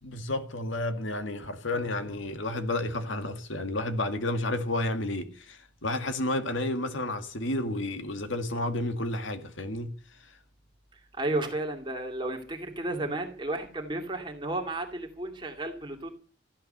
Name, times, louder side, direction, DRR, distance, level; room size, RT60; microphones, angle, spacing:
voice 1, 0.0-10.4, left 1 dB, 85° left, 2.0 m, -31 dB
voice 2, 10.9-16.1, right 2 dB, 25° right, 2.5 m, -33 dB
14.5 x 12.0 x 6.7 m
head